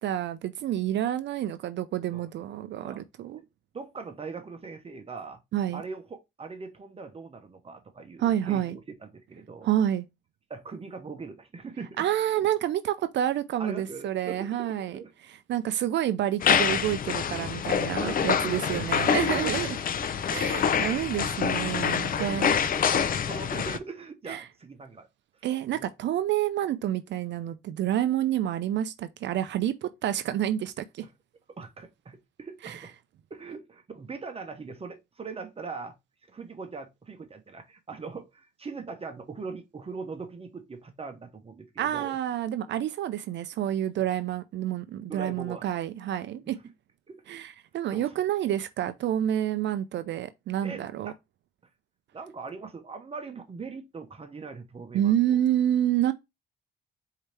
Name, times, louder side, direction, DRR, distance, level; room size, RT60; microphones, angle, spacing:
voice 1, 0.0-3.4 5.5-5.8 8.2-8.8 9.6-10.1 12.0-15.0 15.3-19.8 20.3-22.6 24.3-24.5 25.4-31.1 32.6-32.8 41.8-46.6 47.3-51.1 54.9-56.1, right 11 dB, 65° right, 0.4 m, -28 dB
voice 2, 3.7-5.4 5.7-6.0 6.4-9.7 10.5-12.0 13.6-15.1 18.0-19.5 20.0-20.1 22.0-25.1 25.7-25.9 31.6-32.9 33.3-35.9 36.3-42.2 43.9-44.0 45.1-45.7 46.4-46.5 47.1-47.2 47.9-48.0 50.6-51.1 52.1-55.4, right 4 dB, 30° right, 0.8 m, -41 dB
sound 1, 16.4-23.8, left 7 dB, 45° left, 0.5 m, -26 dB
4.5 x 2.8 x 3.3 m
cardioid pair, 90°, 20 cm